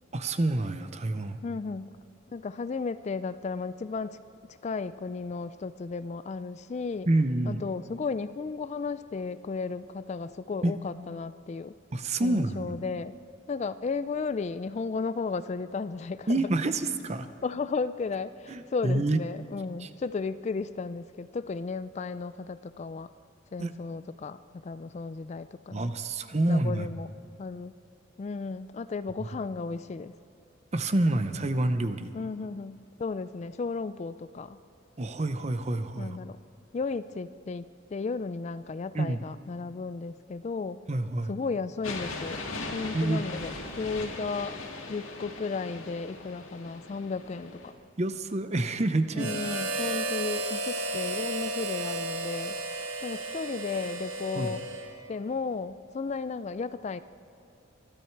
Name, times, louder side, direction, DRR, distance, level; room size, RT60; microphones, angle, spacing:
voice 1, 0.1-1.4 7.1-7.6 10.6-10.7 11.9-12.8 16.3-17.3 18.5-19.2 19.8-19.9 23.6-23.7 25.7-26.9 30.7-32.2 35.0-36.2 38.9-39.2 40.9-41.3 42.9-43.2 48.0-49.3 54.4-54.6, right 2 dB, 35° right, 10 dB, 0.7 m, -28 dB
voice 2, 1.4-2.0 2.3-4.2 4.5-7.1 7.5-11.7 12.2-13.1 13.5-16.5 17.4-23.1 23.5-25.9 26.5-27.1 27.4-27.7 28.2-30.2 32.1-34.6 36.0-36.4 36.7-40.8 41.3-42.4 42.7-44.6 44.9-47.7 49.2-52.6 53.0-54.6 55.1-57.0, left 4 dB, 35° left, 14 dB, 0.3 m, -34 dB
sound 1, 41.8-47.7, left 2 dB, 85° left, 2.1 m, -39 dB
Harmonica, 49.1-55.2, right 2 dB, 80° right, 1.4 m, -33 dB
24.0 x 12.5 x 4.6 m, 2.7 s
head